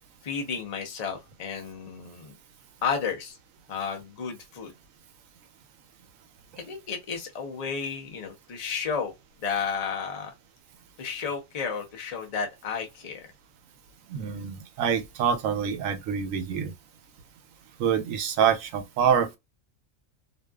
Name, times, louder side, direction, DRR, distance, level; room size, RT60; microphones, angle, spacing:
voice 1, 0.2-2.3 2.8-3.4 3.7-4.7 6.6-9.1 9.4-10.3 11.0-13.3, left 6 dB, 40° left, 0.6 m, -32 dB
voice 2, 14.1-16.7 17.8-19.4, right 7 dB, 90° right, 1.0 m, -26 dB
2.6 x 2.3 x 2.2 m
omnidirectional pair, 1.3 m